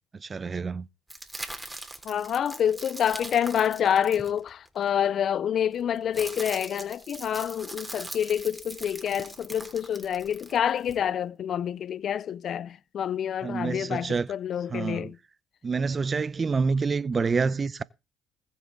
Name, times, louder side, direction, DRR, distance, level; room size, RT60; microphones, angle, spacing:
voice 1, 0.2-0.9 13.4-14.3 14.7-15.1 15.6-17.8, right 4 dB, 35° right, 0.7 m, -27 dB
sound 1, 1.1-4.8 5.7-11.0, right 1 dB, 10° right, 3.2 m, -41 dB
voice 2, 2.0-15.2, left 9 dB, 60° left, 0.5 m, -27 dB
20.5 x 7.1 x 3.8 m
supercardioid pair, 70°, 0 cm